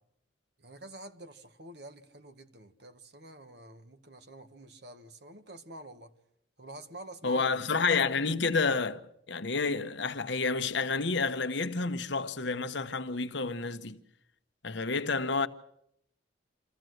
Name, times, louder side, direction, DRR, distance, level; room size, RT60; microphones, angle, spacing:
voice 1, 0.6-6.1 6.6-7.6, right 1 dB, 60° right, 1.6 m, -48 dB
voice 2, 7.2-9.0 9.3-14.0 14.6-15.5, left 4 dB, 70° left, 1.1 m, -29 dB
26.0 x 15.0 x 7.9 m
head